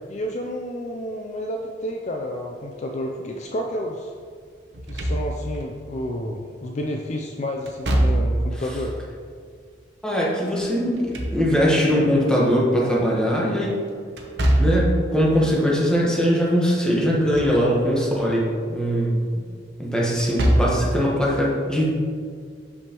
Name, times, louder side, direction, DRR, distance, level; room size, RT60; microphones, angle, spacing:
voice 1, 0.1-4.1 4.9-9.0 20.3-21.0, left 1 dB, 40° left, 2 dB, 0.4 m, -30 dB
Slam / Thump thud, 4.7-5.6 7.7-8.6 10.8-11.9 14.2-15.0 17.0-17.6 18.0-18.1 20.1-20.9, right 1 dB, 70° right, 0.8 m, -22 dB
voice 2, 10.0-13.7 14.6-19.4 19.8-21.8, equal, 5° left, -5 dB, 1.1 m, -21 dB
6.3 x 5.8 x 2.9 m, 2.1 s
head